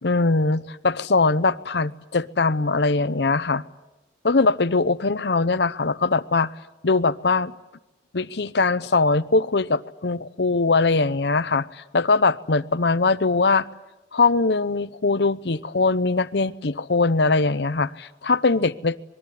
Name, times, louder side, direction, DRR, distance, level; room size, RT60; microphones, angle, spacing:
voice 1, 0.0-3.6 4.2-6.5 6.8-7.5 8.1-13.7 14.1-19.0, left 3 dB, 65° left, 14 dB, 0.8 m, -21 dB
26.0 x 21.5 x 8.6 m, 1.0 s
head